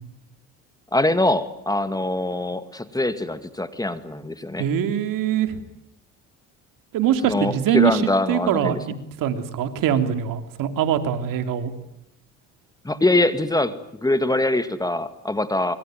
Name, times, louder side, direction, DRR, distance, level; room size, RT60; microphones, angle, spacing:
voice 1, 0.9-4.7 7.2-8.8 12.8-15.8, left 2 dB, 10° left, 11 dB, 2.0 m, -23 dB
voice 2, 4.6-5.6 6.9-8.0 8.3-11.7, right 9 dB, 70° right, 8 dB, 3.2 m, -23 dB
25.5 x 24.5 x 9.2 m, 0.80 s
cardioid pair, 95°, 35 cm